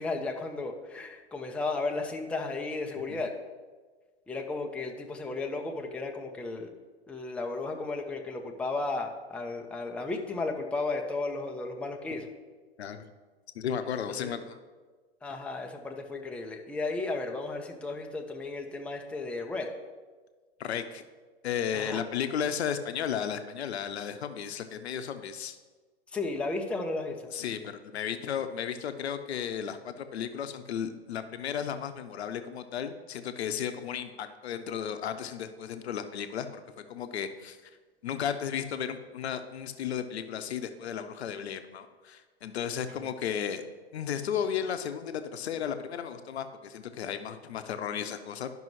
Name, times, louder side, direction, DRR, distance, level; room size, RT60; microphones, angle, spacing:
voice 1, 0.0-3.4 4.3-6.7 7.1-12.3 14.1-14.3 15.2-19.7 21.7-22.0 26.1-27.2, left 3 dB, 5° left, 2 dB, 0.6 m, -34 dB
voice 2, 13.5-14.6 20.6-21.0 21.4-25.6 27.3-37.6 38.0-43.6 43.9-48.5, left 8 dB, 75° left, 9 dB, 0.7 m, -34 dB
12.0 x 5.4 x 3.1 m, 1.4 s
hypercardioid pair, 110°, 32 cm